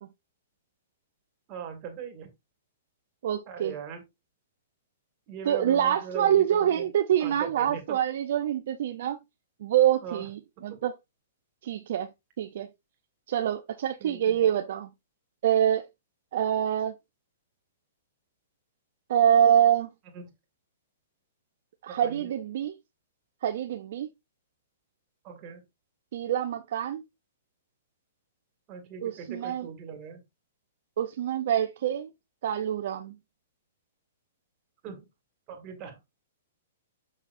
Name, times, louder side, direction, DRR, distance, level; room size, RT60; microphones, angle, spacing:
voice 1, 1.5-2.3 3.5-4.0 5.3-6.9 7.2-8.0 10.0-10.3 10.7-10.8 14.0-14.5 20.1-20.3 21.9-22.3 25.2-25.6 28.7-30.2 34.8-35.1 35.5-36.0, right 6 dB, 35° right, 2.0 m, -40 dB
voice 2, 3.2-3.7 5.5-9.2 9.6-10.9 11.6-12.1 12.4-12.7 13.3-14.9 15.4-15.8 16.3-16.9 19.1-19.9 21.8-22.7 23.4-24.1 26.1-27.0 29.0-29.7 31.0-32.1 32.4-33.1, right 10 dB, 65° right, 0.6 m, -25 dB
6.4 x 5.7 x 2.6 m
hypercardioid pair, 140°, 0 cm